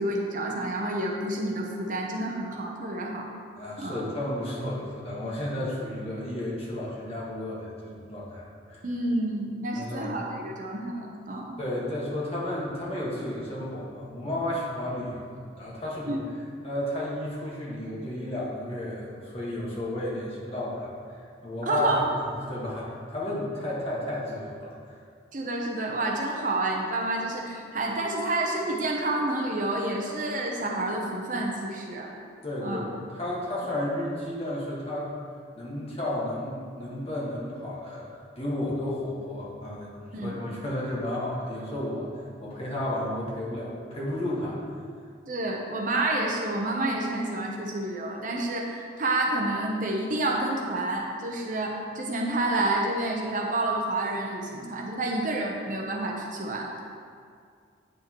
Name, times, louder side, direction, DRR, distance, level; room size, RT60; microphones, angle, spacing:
voice 1, 0.0-3.3 3.8-4.0 8.8-11.5 16.1-16.2 21.7-22.1 25.3-32.1 32.6-32.8 40.1-40.4 45.3-56.8, right 2 dB, 45° right, 0 dB, 0.7 m, -29 dB
voice 2, 3.6-8.9 9.7-10.1 11.3-16.2 16.6-20.9 21.4-22.2 22.5-24.8 32.4-35.1 35.6-38.1 38.4-39.9 40.2-42.1 42.4-44.6, left 1 dB, 30° left, -5 dB, 1.5 m, -32 dB
9.0 x 6.2 x 3.0 m, 2.2 s
head